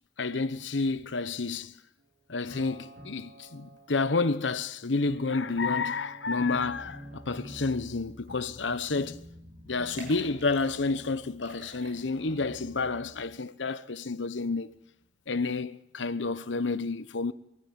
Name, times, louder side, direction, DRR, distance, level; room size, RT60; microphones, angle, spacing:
voice 1, 0.2-1.7 2.3-9.2 9.7-14.7 15.3-17.3, left 3 dB, 80° left, 1.0 m, -30 dB
sound 1, 2.0-2.1 2.5-4.5 5.1-13.4, equal, 60° right, 3.1 m, -48 dB
sound 2, 9.8-11.0 11.4-12.4 12.8-12.9, right 2 dB, 85° right, 6.7 m, -48 dB
23.5 x 14.0 x 9.2 m
head